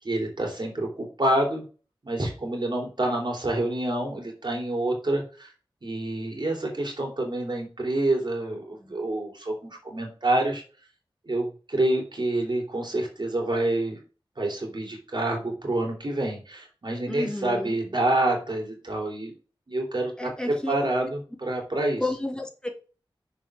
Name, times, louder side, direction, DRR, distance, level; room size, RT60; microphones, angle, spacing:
voice 1, 0.0-1.6 2.0-5.5 5.8-10.6 11.3-14.0 14.4-19.3 19.7-22.0, right 1 dB, 55° right, 0 dB, 3.5 m, -27 dB
voice 2, 17.1-17.7 20.2-20.7 22.0-22.7, left 2 dB, 10° left, 2 dB, 2.3 m, -31 dB
7.3 x 4.9 x 6.2 m, 0.36 s
wide cardioid pair, 75°, 9 cm